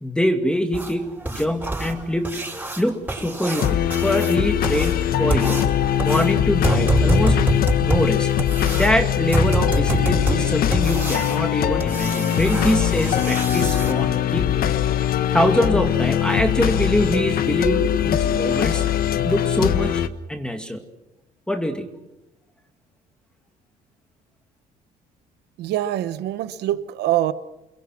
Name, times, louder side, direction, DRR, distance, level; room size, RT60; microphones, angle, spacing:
voice 1, 0.0-2.4 2.8-5.6 6.0-7.4 7.8-8.3 8.7-14.5 15.3-18.9 19.2-20.0 20.3-20.8 21.5-21.9, equal, 5° left, 2.4 m, -24 dB
sound 1, 0.7-13.9 16.2-16.3 16.8-16.9 17.3-17.4 17.9-18.0 18.5-18.6 19.0-19.1 19.6-19.7, right 1 dB, 10° right, 7.7 m, -26 dB
sound 2, 3.6-20.1, left 11 dB, 60° left, 1.4 m, -21 dB
voice 2, 25.6-27.3, right 13 dB, 80° right, 1.1 m, -24 dB
29.5 x 22.5 x 6.2 m
cardioid pair, 110°, 17 cm